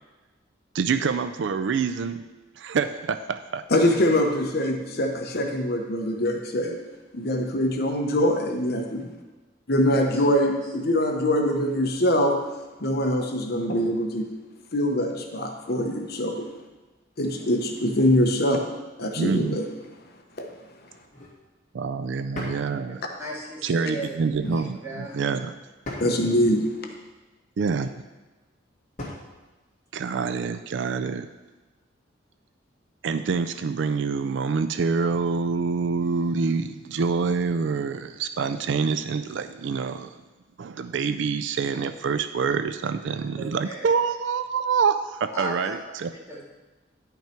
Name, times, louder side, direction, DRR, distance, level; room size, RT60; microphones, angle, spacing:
voice 1, 0.7-2.2 2.6-3.6 19.2-19.6 21.7-23.0 23.6-25.5 27.6-27.9 29.9-31.3 33.0-40.1 40.6-46.1, right 5 dB, 70° right, 10 dB, 0.4 m, -26 dB
voice 2, 3.7-6.8 7.1-9.1 9.7-12.4 12.8-14.3 14.7-16.5 17.2-18.6 19.0-19.7 20.4-20.5 24.4-24.5 26.0-26.7, left 1 dB, 55° left, 3 dB, 1.0 m, -23 dB
voice 3, 10.1-10.6 17.3-17.9 23.2-24.1 24.5-25.1 26.0-26.3 43.4-43.9 45.3-45.8 46.1-46.4, right 1 dB, 15° right, -7 dB, 2.5 m, -37 dB
sound 1, 21.0-21.4 22.3-22.7 24.2-24.6 25.8-26.2 27.6-28.0 29.0-29.3, left 1 dB, 40° left, 2.5 m, -37 dB
10.5 x 5.8 x 4.4 m, 1.2 s
head